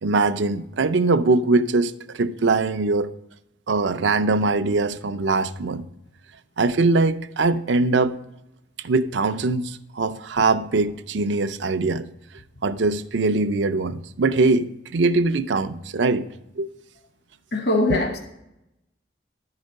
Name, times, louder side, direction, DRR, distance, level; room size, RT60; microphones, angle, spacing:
voice 1, 0.0-3.1 3.7-5.9 6.6-8.2 8.8-12.1 12.6-16.3 16.6-16.7 17.9-18.0, right 3 dB, 75° right, 0.5 m, -22 dB
voice 2, 17.5-18.2, left 2 dB, 60° left, 1.0 m, -21 dB
11.0 x 4.8 x 6.3 m
head